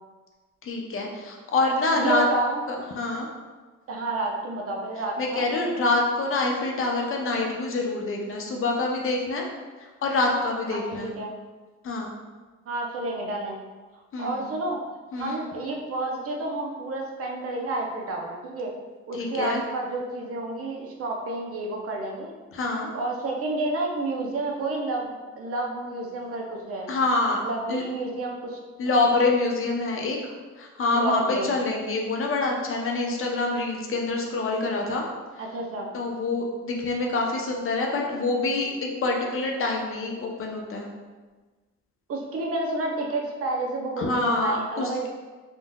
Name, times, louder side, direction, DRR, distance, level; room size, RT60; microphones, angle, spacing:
voice 1, 0.6-2.2 2.7-3.3 5.2-9.4 10.0-11.1 11.8-12.1 14.1-14.4 15.1-15.4 19.1-19.6 22.5-22.9 26.9-27.4 27.7-27.8 28.8-35.0 35.9-40.9 44.0-45.1, left 2 dB, 45° left, 0 dB, 0.6 m, -26 dB
voice 2, 2.0-2.6 3.9-5.5 10.7-11.3 12.7-13.6 14.2-14.8 15.2-18.7 19.1-22.3 22.9-26.9 27.4-28.6 28.8-28.9 30.9-31.5 35.4-35.9 42.1-45.1, right 2 dB, 50° right, 0 dB, 0.6 m, -30 dB
3.7 x 2.5 x 2.2 m, 1.3 s
cardioid pair, 90°, 30 cm